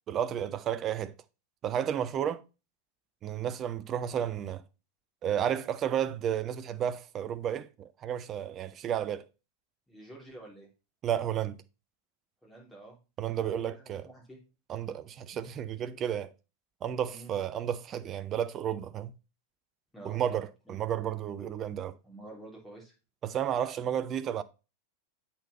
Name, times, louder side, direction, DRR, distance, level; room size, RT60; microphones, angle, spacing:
voice 1, 0.1-1.1 1.6-2.4 3.2-4.6 5.2-9.3 11.0-11.6 13.2-14.0 14.7-16.3 16.8-19.1 20.0-21.9 23.2-24.4, right 9 dB, 30° right, 0.5 m, -32 dB
voice 2, 9.9-10.7 12.4-13.0 13.5-14.4 17.1-17.3 19.9-20.2 20.6-20.8 22.0-22.9, right 2 dB, 5° left, 3.1 m, -49 dB
8.0 x 4.3 x 4.2 m
figure-of-eight pair, 90°, 0 cm